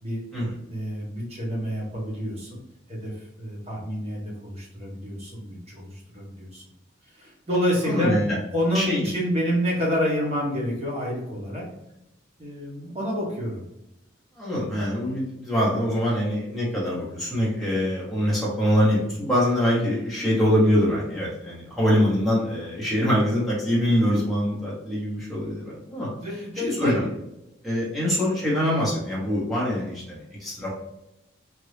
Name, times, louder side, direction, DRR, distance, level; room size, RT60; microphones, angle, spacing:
voice 1, 0.7-2.6 2.9-6.6 7.1-8.2 8.5-11.7 12.4-13.6 26.2-27.1, equal, 30° right, -5 dB, 1.1 m, -28 dB
voice 2, 7.9-8.3 8.7-9.1 14.4-26.1 26.6-27.0 27.6-30.7, equal, ahead, -8 dB, 0.9 m, -24 dB
2.9 x 2.6 x 3.2 m, 0.88 s
head